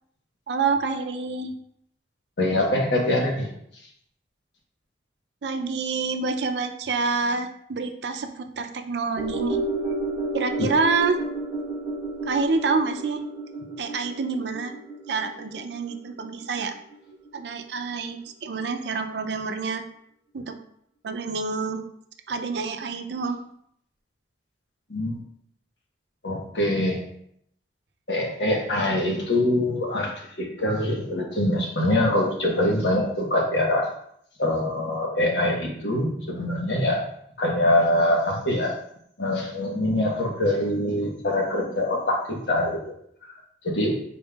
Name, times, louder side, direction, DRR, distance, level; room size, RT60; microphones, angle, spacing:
voice 1, 0.5-1.5 5.4-9.6 10.3-11.2 12.3-13.2 13.8-14.7 15.1-16.7 17.3-19.8 20.3-20.6 21.0-21.8 22.3-23.4, right 4 dB, 75° right, 7 dB, 0.5 m, -27 dB
voice 2, 2.4-3.5 10.6-10.7 24.9-25.2 26.2-27.0 28.1-33.9 34.4-37.1 37.4-38.8 39.2-42.8 43.6-44.0, left 1 dB, 85° left, -1 dB, 1.2 m, -24 dB
sound 1, 9.2-17.6 17.9-18.0, right 2 dB, 30° right, 1.4 m, -32 dB
5.4 x 4.2 x 2.3 m, 0.70 s
head